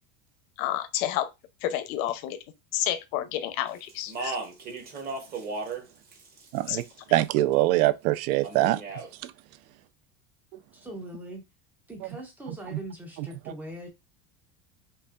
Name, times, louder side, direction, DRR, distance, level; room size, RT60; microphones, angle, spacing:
voice 1, 0.6-1.3 1.6-2.4 2.7-4.4 6.7-6.8, left 12 dB, 75° left, 0.7 m, -30 dB
Speech, 3.9-5.8 6.1-7.0 8.4-9.1, right 3 dB, 25° right, 0.7 m, -35 dB
voice 2, 6.5-6.8 7.1-8.8 9.2-9.3, right 16 dB, 80° right, 0.5 m, -23 dB
voice 3, 10.7-11.4 11.9-13.9, right 1 dB, 5° right, 0.3 m, -41 dB
5.4 x 2.4 x 2.3 m
cardioid pair, 165°, 41 cm